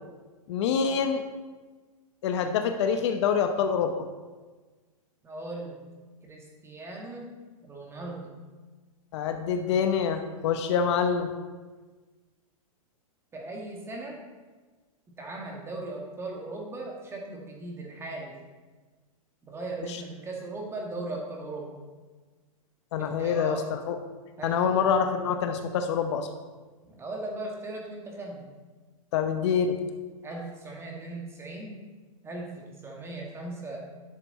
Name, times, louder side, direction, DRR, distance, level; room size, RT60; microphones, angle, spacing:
voice 1, 0.5-1.2 2.2-3.9 9.1-11.3 22.9-23.6 23.9-24.0 24.4-26.3 29.1-29.8, left 7 dB, 50° left, 7 dB, 0.9 m, -26 dB
voice 2, 5.2-5.8 6.2-7.3 7.6-8.3 13.3-14.2 15.1-18.4 19.4-21.7 22.9-23.7 24.4-24.7 26.8-28.5 30.2-31.8 32.2-33.9, right 2 dB, 15° right, -1 dB, 1.9 m, -38 dB
10.5 x 6.9 x 4.2 m, 1.3 s
hypercardioid pair, 130°, 18 cm